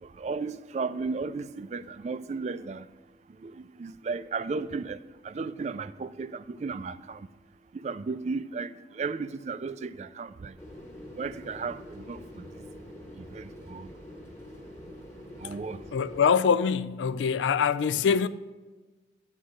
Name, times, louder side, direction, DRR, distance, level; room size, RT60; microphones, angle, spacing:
voice 1, 0.0-2.9 3.4-7.3 7.7-10.6 11.1-12.5 13.2-13.9 15.4-15.8, right 4 dB, 40° right, 0.3 m, -35 dB
sound 1, 10.6-16.2, left 1 dB, 15° left, 1.1 m, -45 dB
voice 2, 15.9-18.3, left 6 dB, 85° left, 0.4 m, -24 dB
9.6 x 5.0 x 6.4 m
head